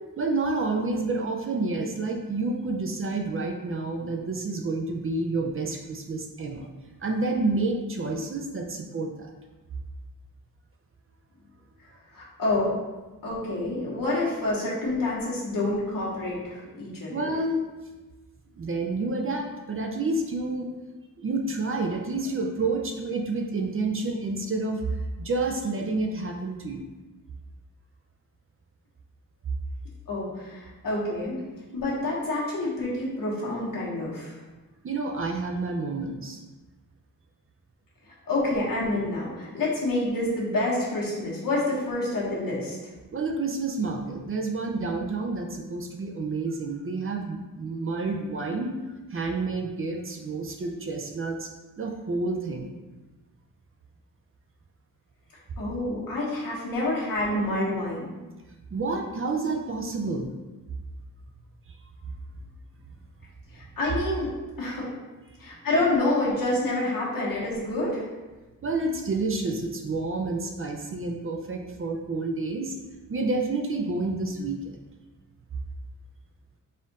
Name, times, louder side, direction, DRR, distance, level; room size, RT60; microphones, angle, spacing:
voice 1, 0.2-6.7 7.0-9.3 17.1-17.6 18.6-20.7 21.2-26.8 34.8-36.4 43.1-48.8 49.1-51.5 51.8-52.7 58.7-60.3 68.6-72.8 73.1-74.8, right 3 dB, 40° right, 2 dB, 0.4 m, -29 dB
voice 2, 12.1-12.7 13.2-17.3 30.1-31.4 31.7-34.4 38.3-42.8 55.6-58.1 63.5-64.3 64.6-64.8 65.4-68.1, left 2 dB, 80° left, -6 dB, 1.4 m, -28 dB
4.1 x 2.5 x 4.0 m, 1.2 s
wide cardioid pair, 165°, 33 cm